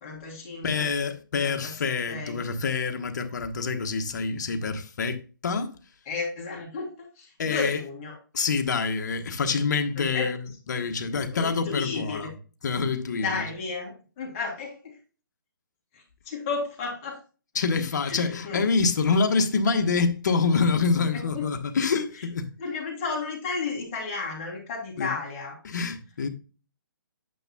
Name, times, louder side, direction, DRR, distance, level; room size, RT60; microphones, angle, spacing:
voice 1, 0.0-0.9 1.4-1.7 2.1-2.4 6.1-8.2 9.9-10.3 11.1-12.3 13.2-15.0 15.9-17.2 18.0-18.7 19.7-19.8 21.3-21.5 22.2-22.3 22.6-25.6, left 4 dB, 30° left, 3.2 m, -33 dB
voice 2, 0.6-5.7 7.4-7.8 8.3-10.4 10.7-12.3 12.6-13.4 17.5-22.5 25.0-25.1 25.6-26.3, left 4 dB, 60° left, 1.2 m, -26 dB
9.0 x 6.7 x 2.3 m
hypercardioid pair, 145°, 11 cm